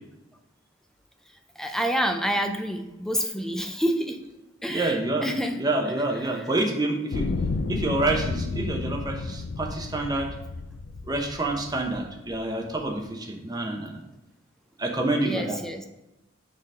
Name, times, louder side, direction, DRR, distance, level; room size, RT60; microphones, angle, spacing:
voice 1, 1.6-4.2 4.6-5.6 6.2-6.5 15.2-15.9, equal, ahead, 5 dB, 0.5 m, -28 dB
voice 2, 4.7-5.3 5.6-7.3 7.7-10.3 11.1-13.9 14.8-15.6, right 2 dB, 20° right, 1 dB, 0.9 m, -27 dB
sound 1, 7.1-12.4 13.1-13.2, left 3 dB, 60° left, 0.4 m, -32 dB
6.6 x 3.9 x 4.9 m, 0.94 s
head